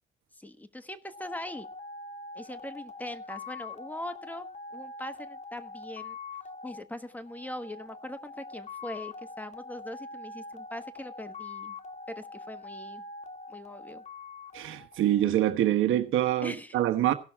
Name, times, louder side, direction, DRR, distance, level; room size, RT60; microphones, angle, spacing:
voice 1, 0.3-1.7 2.3-4.5 4.7-6.2 6.6-11.8 12.1-13.0 13.5-14.0 16.4-16.8, left 1 dB, 10° left, 1.3 m, -41 dB
sound 1, 1.1-15.5, left 3 dB, 35° left, 1.9 m, -44 dB
voice 2, 14.5-17.1, right 12 dB, 85° right, 1.3 m, -25 dB
16.5 x 6.1 x 5.8 m
cardioid pair, 90°, 20 cm